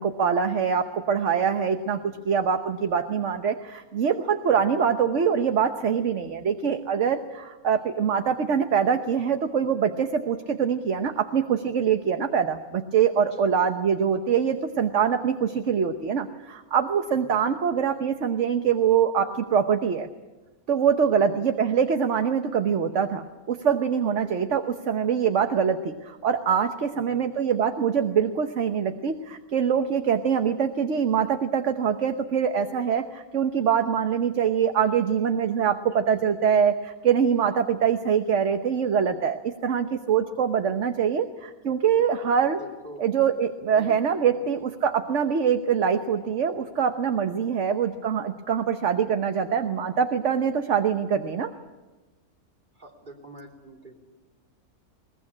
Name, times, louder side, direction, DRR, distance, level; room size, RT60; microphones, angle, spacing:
voice 1, 0.0-20.1 20.7-42.6 43.0-51.5, right 7 dB, 55° right, 8 dB, 1.3 m, -24 dB
voice 2, 42.6-43.0 43.7-44.0 44.3-44.4 52.7-53.9, right 1 dB, 35° right, 1 dB, 3.6 m, -45 dB
22.0 x 19.5 x 9.7 m, 1.2 s
omnidirectional pair, 1.6 m